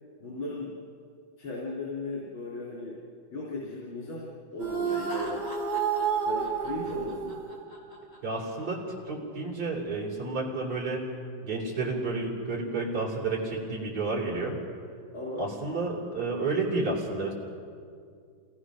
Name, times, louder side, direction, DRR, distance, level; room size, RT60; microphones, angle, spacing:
voice 1, 0.2-0.8 1.4-3.0 3.3-5.5 6.3-7.5 15.1-15.5, left 2 dB, 85° left, -5 dB, 4.1 m, -37 dB
sound 1, 4.6-8.0, right 6 dB, 70° right, 3.1 m, -30 dB
Laughter, 4.8-8.8, equal, 20° left, 4.9 m, -44 dB
voice 2, 8.2-11.1 11.4-14.6 15.4-17.3, right 3 dB, 55° right, -5 dB, 4.1 m, -31 dB
27.5 x 18.0 x 6.3 m, 2.3 s
omnidirectional pair, 2.1 m